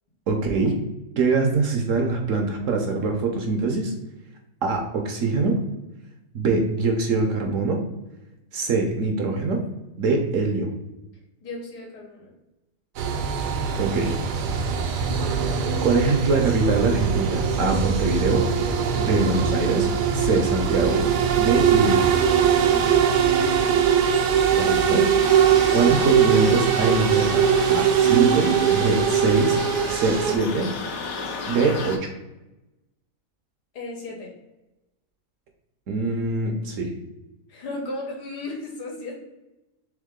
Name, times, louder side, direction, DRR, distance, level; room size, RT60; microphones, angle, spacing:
voice 1, 0.3-0.7 1.2-3.9 4.6-5.6 6.3-7.8 8.5-9.6 10.0-10.7 13.8-14.2 15.8-18.5 19.0-19.9 20.1-21.1 21.4-22.0 24.5-25.1 25.7-27.4 27.7-29.6 29.9-30.7 31.5-32.1 35.9-36.9, right 3 dB, 65° right, 3 dB, 0.8 m, -23 dB
voice 2, 11.4-12.3 22.6-23.3 33.7-34.3 37.5-39.2, left 2 dB, 90° left, -1 dB, 1.7 m, -35 dB
sound 1, 13.0-30.4, right 7 dB, 85° right, 1.2 m, -21 dB
sound 2, 25.2-32.0, left 4 dB, 65° left, 1.0 m, -34 dB
3.6 x 3.4 x 3.6 m, 0.99 s
omnidirectional pair, 1.7 m